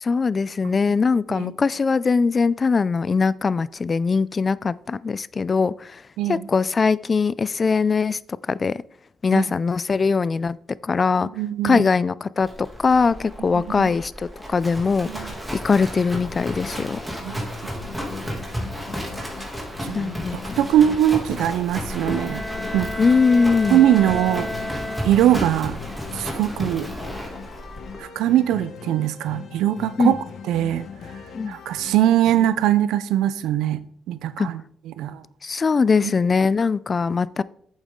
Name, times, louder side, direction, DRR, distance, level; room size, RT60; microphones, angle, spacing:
voice 1, 0.0-6.0 6.3-8.2 8.5-8.8 9.2-10.6 10.8-11.3 11.6-15.3 15.6-17.0 19.9-20.6 23.0-23.8 30.0-30.1 31.3-31.6 34.4-34.5 35.4-37.4, left 4 dB, 35° left, 0.3 m, -21 dB
voice 2, 11.2-11.9 13.8-13.9 15.1-15.3 17.2-17.4 19.8-22.5 22.7-23.0 23.7-24.5 25.0-25.8 26.1-26.9 28.0-30.2 30.5-30.9 31.5-33.8 34.1-34.6 34.9-35.2, right 11 dB, 85° right, 0.5 m, -21 dB
Livestock farm animals working animals, 12.4-28.0, equal, 5° right, 2.4 m, -33 dB
sound 1, 16.0-32.4, left 7 dB, 60° left, 0.9 m, -40 dB
Bowed string instrument, 21.9-25.6, left 1 dB, 10° left, 0.8 m, -32 dB
8.5 x 7.3 x 3.7 m
cardioid pair, 90°, 0 cm